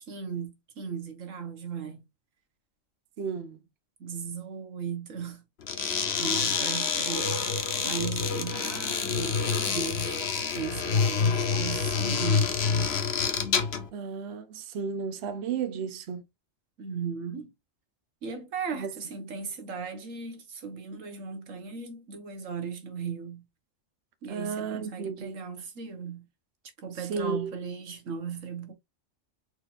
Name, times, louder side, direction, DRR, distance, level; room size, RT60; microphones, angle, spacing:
voice 1, 0.1-2.1 4.0-5.4 5.9-10.2 10.5-13.0 16.8-17.5 18.2-23.4 24.2-26.3 26.8-28.7, right 6 dB, 90° right, 1.6 m, -37 dB
voice 2, 3.2-3.6 6.6-6.7 13.9-16.3 18.7-18.9 24.3-25.3 27.0-27.5, right 5 dB, 60° right, 1.0 m, -33 dB
sound 1, 5.6-13.9, left 5 dB, 60° left, 1.1 m, -27 dB
4.7 x 4.2 x 2.5 m
omnidirectional pair, 1.3 m